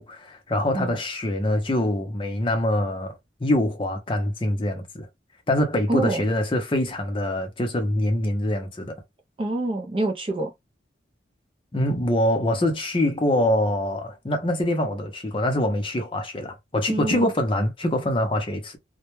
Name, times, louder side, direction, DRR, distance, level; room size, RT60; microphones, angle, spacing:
voice 1, 0.0-5.1 5.5-9.0 11.7-18.8, left 1 dB, 25° left, 0.6 m, -24 dB
voice 2, 5.9-6.3 9.4-10.5 16.9-17.3, right 2 dB, 30° right, 0.4 m, -26 dB
2.1 x 2.1 x 2.9 m
head